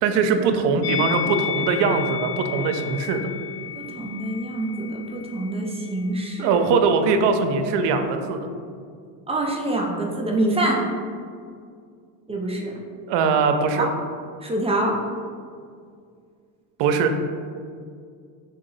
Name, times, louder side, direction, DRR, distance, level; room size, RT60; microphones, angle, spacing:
voice 1, 0.0-3.3 6.4-8.5 13.1-13.9 16.8-17.1, right 5 dB, 60° right, 7 dB, 0.5 m, -21 dB
Musical instrument, 0.8-6.1 6.3-6.5, left 9 dB, 75° left, 0.6 m, -32 dB
voice 2, 3.7-6.6 9.3-10.8 12.3-12.7 13.8-13.9 14.4-15.0, right 1 dB, 15° right, -1 dB, 0.3 m, -25 dB
3.8 x 2.7 x 3.9 m, 2.2 s
supercardioid pair, 100°, 47 cm